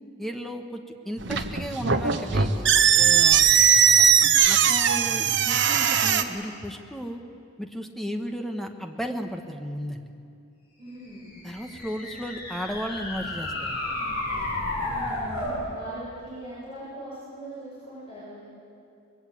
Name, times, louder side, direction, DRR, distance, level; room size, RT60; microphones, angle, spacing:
voice 1, 0.2-3.4 3.9-4.1 4.5-7.2 7.6-10.0 11.4-13.8, equal, ahead, 4 dB, 1.3 m, -34 dB
sound 1, 1.2-6.2, right 8 dB, 55° right, 1.1 m, -19 dB
voice 2, 10.8-11.4 14.7-18.4, right 1 dB, 30° left, -9 dB, 7.2 m, -41 dB
sound 2, 11.2-15.6, left 2 dB, 45° left, 8.0 m, -32 dB
25.0 x 21.0 x 8.7 m, 2.5 s
head